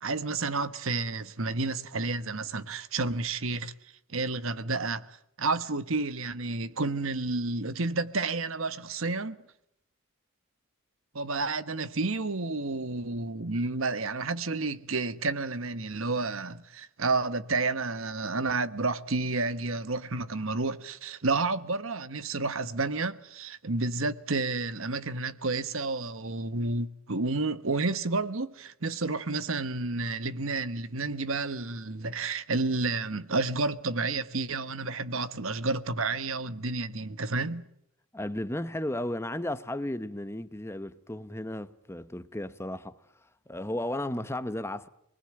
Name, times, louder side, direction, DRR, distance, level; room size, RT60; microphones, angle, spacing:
voice 1, 0.0-3.7 4.1-9.4 11.1-37.6, right 3 dB, 70° right, 1.2 m, -30 dB
voice 2, 38.1-43.0 43.5-44.9, left 1 dB, 10° left, 0.9 m, -34 dB
28.0 x 20.0 x 8.8 m
head